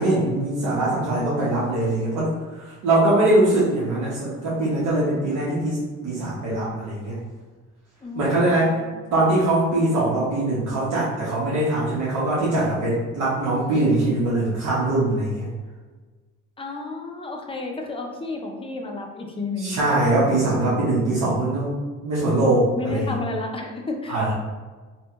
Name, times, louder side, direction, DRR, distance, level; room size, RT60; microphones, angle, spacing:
voice 1, 0.0-2.3 2.6-7.2 8.1-8.7 9.1-15.5 19.6-21.7 22.0-23.1 24.1-24.3, right 2 dB, 85° right, -8 dB, 0.9 m, -22 dB
voice 2, 8.0-9.0 16.6-19.8 22.7-24.2, left 3 dB, 20° left, 2 dB, 0.5 m, -32 dB
2.7 x 2.2 x 3.5 m, 1.3 s
cardioid pair, 90°, 30 cm